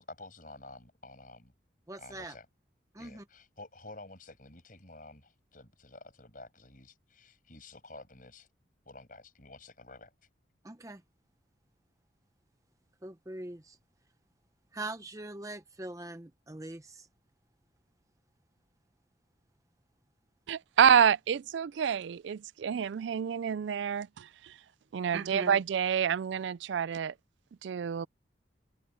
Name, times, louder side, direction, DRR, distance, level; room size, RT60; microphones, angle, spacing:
voice 1, 0.0-1.5 2.0-2.5 3.0-8.5 8.8-10.1, left 2 dB, 45° left, 6.7 m, -50 dB
voice 2, 1.9-2.3 2.9-3.2 10.6-11.0 13.0-13.8 14.7-17.1 25.1-25.5, right 2 dB, 15° right, 0.7 m, -42 dB
voice 3, 20.5-24.3 24.9-27.1 27.6-28.1, right 7 dB, 75° right, 0.3 m, -27 dB
head